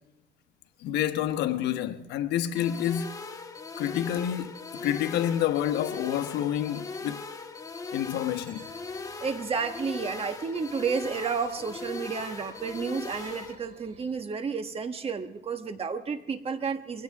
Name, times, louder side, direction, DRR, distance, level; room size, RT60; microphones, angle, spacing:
voice 1, 0.8-3.2 3.8-7.2 7.9-8.7, left 11 dB, 85° left, 1.0 m, -28 dB
sound 1, 2.5-13.5, left 4 dB, 20° left, 1.4 m, -39 dB
sound 2, 8.0-14.2, right 4 dB, 55° right, 4.8 m, -57 dB
voice 2, 9.2-17.0, right 5 dB, 35° right, 1.4 m, -31 dB
23.0 x 17.5 x 3.5 m
cardioid pair, 110°, 17 cm